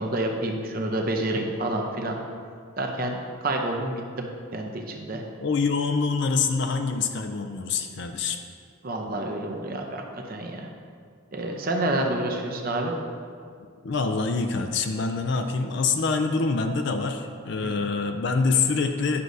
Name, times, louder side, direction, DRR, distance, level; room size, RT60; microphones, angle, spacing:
voice 1, 0.0-2.2 2.8-5.2 8.8-10.7 11.3-12.9 17.6-17.8, right 1 dB, 45° right, 2 dB, 0.7 m, -29 dB
voice 2, 5.4-8.4 13.8-19.2, left 4 dB, 55° left, 6 dB, 0.4 m, -25 dB
9.7 x 6.1 x 2.7 m, 2.2 s
head